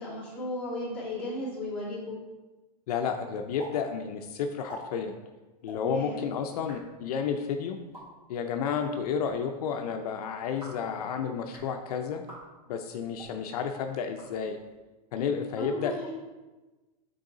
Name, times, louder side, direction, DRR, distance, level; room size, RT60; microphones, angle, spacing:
voice 1, 0.0-2.2 5.8-6.3 15.6-16.1, left 1 dB, 5° left, -10 dB, 2.0 m, -35 dB
voice 2, 2.9-5.1 5.6-7.8 8.3-12.2 12.7-14.6 15.1-15.9, left 6 dB, 70° left, 5 dB, 0.5 m, -31 dB
sound 1, 3.6-3.7 4.0-4.1 4.5-4.8 5.6-5.8 6.5-6.8 7.8-8.0 9.0-9.3 10.4-10.8 11.4-11.7 12.2-12.4 13.1-13.3 14.0-14.7, right 1 dB, 15° right, 2.0 m, -47 dB
6.3 x 4.0 x 3.9 m, 1.2 s
supercardioid pair, 170°, 21 cm